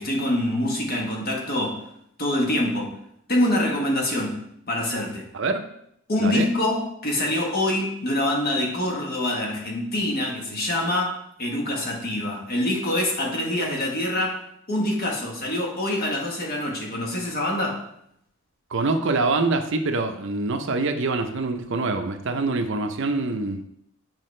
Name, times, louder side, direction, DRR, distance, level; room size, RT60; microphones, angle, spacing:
voice 1, 0.0-1.8 2.2-3.0 3.3-4.4 4.7-5.3 6.1-14.4 14.7-17.9, left 1 dB, 45° left, 0 dB, 1.2 m, -25 dB
voice 2, 18.7-23.6, right 3 dB, 60° right, 6 dB, 0.6 m, -25 dB
7.5 x 4.7 x 3.2 m, 0.74 s
head